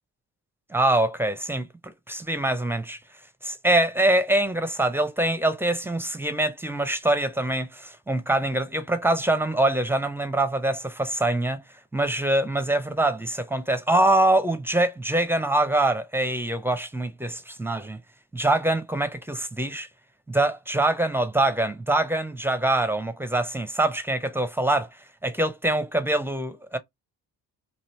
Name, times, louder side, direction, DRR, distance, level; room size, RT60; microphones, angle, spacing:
voice 1, 0.7-3.0 3.4-11.6 11.9-18.0 18.3-19.9 20.3-24.9 25.2-26.8, right 1 dB, 5° right, 0.5 m, -24 dB
3.1 x 2.5 x 3.0 m
figure-of-eight pair, 45°, 50 cm